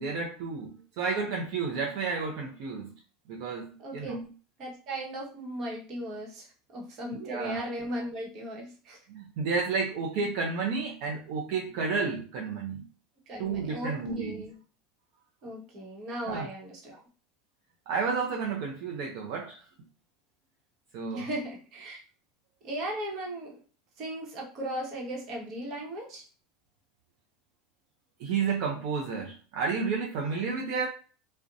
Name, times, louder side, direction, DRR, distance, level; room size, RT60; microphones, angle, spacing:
voice 1, 0.0-2.9 3.3-4.2 7.1-7.6 9.1-12.9 13.4-14.3 16.3-16.5 17.9-19.6 20.9-21.3 28.2-30.9, right 5 dB, 70° right, -1 dB, 0.5 m, -31 dB
voice 2, 3.8-4.3 4.6-6.5 6.7-9.0 13.3-14.6 15.4-17.0 21.1-22.0 22.6-23.6 24.0-26.2, right 1 dB, 50° right, -1 dB, 1.0 m, -37 dB
2.6 x 2.1 x 2.4 m, 0.38 s
supercardioid pair, 115°, 0 cm